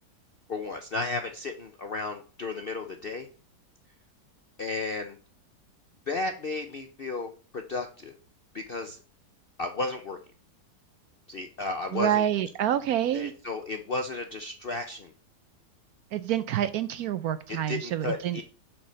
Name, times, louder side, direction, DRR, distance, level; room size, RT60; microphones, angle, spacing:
voice 1, 0.5-3.3 4.6-5.2 6.1-8.1 8.5-9.0 9.6-10.2 11.3-12.2 13.1-15.1 17.7-18.4, left 3 dB, 55° left, 5 dB, 0.6 m, -33 dB
voice 2, 11.9-13.3 16.1-18.4, right 10 dB, 70° right, 13 dB, 0.9 m, -27 dB
7.3 x 4.8 x 6.3 m, 0.38 s
omnidirectional pair, 1.9 m